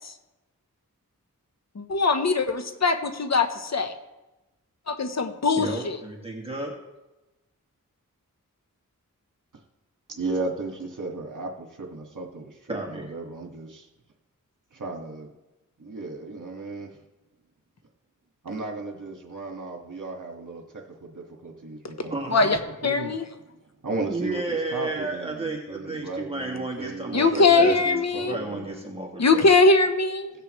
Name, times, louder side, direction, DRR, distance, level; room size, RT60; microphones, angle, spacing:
voice 1, 1.7-3.9 4.9-6.0 22.3-22.6 22.8-23.2 27.1-28.4 29.2-30.3, left 3 dB, 55° left, 7 dB, 1.1 m, -21 dB
voice 2, 5.6-6.7 12.7-13.0 22.1-22.5 24.1-27.8 28.3-29.5, right 2 dB, 15° right, -2 dB, 2.3 m, -32 dB
voice 3, 10.1-13.9 14.7-15.3 15.8-17.0 18.4-23.1 23.8-28.7, right 3 dB, 65° right, 0 dB, 2.0 m, -35 dB
17.5 x 6.8 x 3.2 m, 1.0 s
cardioid pair, 45°, 33 cm